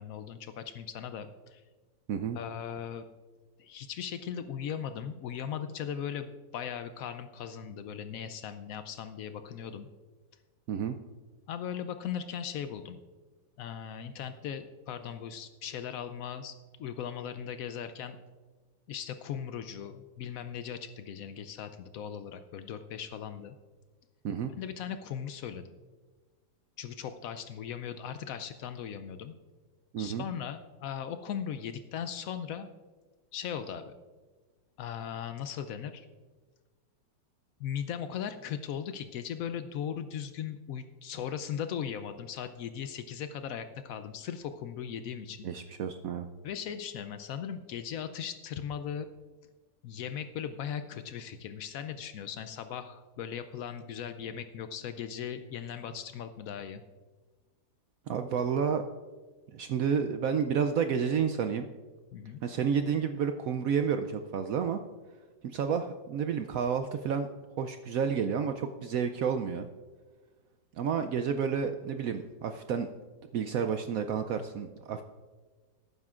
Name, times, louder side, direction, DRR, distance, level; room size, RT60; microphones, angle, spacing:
voice 1, 0.0-1.6 2.3-3.0 3.6-9.9 11.5-13.0 13.6-16.5 16.8-18.2 18.9-23.5 24.6-25.8 26.8-29.3 30.0-32.7 33.3-33.9 34.8-36.1 37.6-45.5 46.4-49.1 49.8-56.8 62.1-62.4, left 8 dB, 90° left, 9 dB, 0.7 m, -38 dB
voice 2, 29.9-30.2 45.4-46.3 58.1-58.8 59.5-61.7 62.4-64.8 65.4-67.3 67.6-69.7 70.8-72.9 73.3-75.0, right 7 dB, 90° right, 7 dB, 0.7 m, -30 dB
18.0 x 9.4 x 2.4 m, 1.4 s
omnidirectional pair, 2.1 m